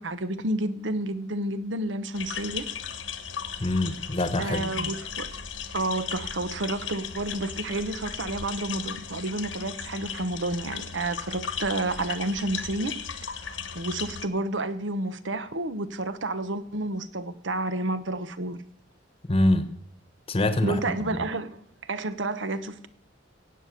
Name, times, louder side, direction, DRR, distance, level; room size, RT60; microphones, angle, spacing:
voice 1, 0.0-2.7 4.4-5.3 5.7-12.9 13.4-18.6 20.6-22.9, right 2 dB, 75° right, 1.0 m, -30 dB
sound 1, 2.1-14.3, left 7 dB, 80° left, 1.3 m, -36 dB
voice 2, 3.6-4.9 19.3-19.7 20.3-20.8 21.1-21.2, left 1 dB, 30° left, 1.1 m, -25 dB
17.0 x 8.5 x 6.6 m
head